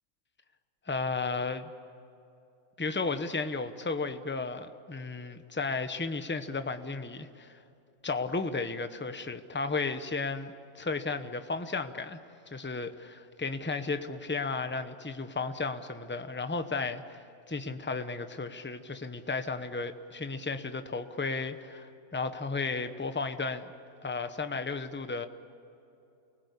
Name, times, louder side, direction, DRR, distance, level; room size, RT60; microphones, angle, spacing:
voice 1, 0.9-1.7 2.8-7.6 8.0-12.2 12.5-17.2 17.5-23.7 24.0-25.3, left 4 dB, 10° left, 8 dB, 0.7 m, -34 dB
29.5 x 20.0 x 8.3 m, 2.8 s
omnidirectional pair, 1.6 m